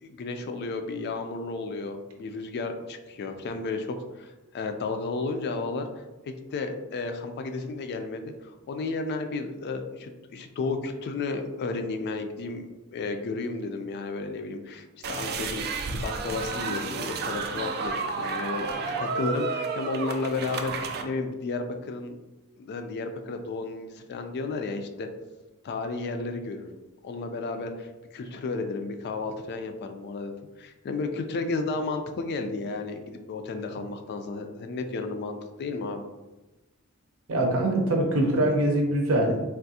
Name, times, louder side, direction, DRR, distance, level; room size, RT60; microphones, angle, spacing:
voice 1, 0.0-5.9 6.5-20.7 21.0-22.2 22.6-25.1 25.6-26.8 27.0-30.3 30.6-36.0, left 3 dB, 50° left, 7 dB, 0.3 m, -33 dB
sound 1, 15.0-21.0, right 4 dB, 45° right, 0.3 m, -31 dB
voice 2, 37.3-39.4, right 1 dB, 65° right, 1 dB, 0.7 m, -23 dB
3.4 x 2.4 x 2.7 m, 1.1 s
head